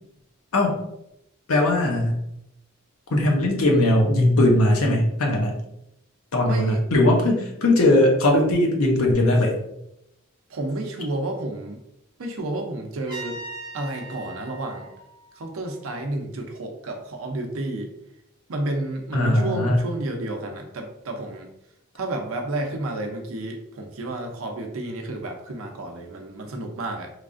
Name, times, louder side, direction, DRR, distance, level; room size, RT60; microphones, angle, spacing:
voice 1, 1.5-2.2 3.1-5.6 6.3-9.5 19.1-19.8, left 1 dB, 80° left, 1 dB, 0.6 m, -19 dB
voice 2, 6.4-6.8 10.5-11.8 12.2-13.4 13.7-14.9 15.4-17.9 18.5-21.5 21.9-27.1, right 2 dB, 75° right, 3 dB, 0.5 m, -31 dB
Trumpet, 13.1-16.0, right 2 dB, 20° right, 0.8 m, -40 dB
3.1 x 2.4 x 2.4 m, 0.83 s
head